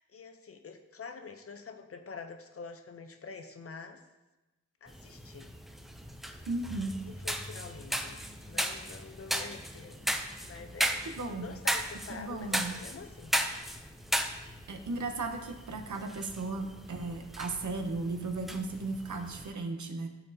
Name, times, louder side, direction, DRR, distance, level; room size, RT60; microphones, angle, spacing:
voice 1, 0.0-4.0 4.8-5.5 7.0-8.2 8.5-10.1 10.4-13.4, left 5 dB, 50° left, 6 dB, 0.6 m, -46 dB
sound 1, 4.9-19.5, equal, ahead, 0.4 m, -37 dB
voice 2, 6.5-6.9 11.2-11.5 12.1-12.7 14.7-20.1, right 3 dB, 75° right, 6 dB, 0.8 m, -35 dB
12.0 x 4.2 x 2.7 m, 1.1 s
wide cardioid pair, 105°, 29 cm